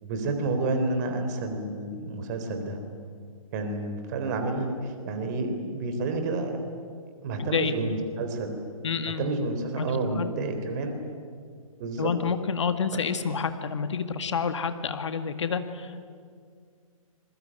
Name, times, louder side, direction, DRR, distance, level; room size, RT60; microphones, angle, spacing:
voice 1, 0.0-2.8 3.5-6.6 7.2-8.6 9.2-11.0 11.8-12.1 12.9-13.0, right 2 dB, 30° right, 6 dB, 3.8 m, -30 dB
voice 2, 7.4-7.7 8.8-9.3 9.8-10.3 12.0-16.0, left 6 dB, 55° left, 9 dB, 1.9 m, -29 dB
26.5 x 22.0 x 9.1 m, 2.1 s
figure-of-eight pair, 130°, 18 cm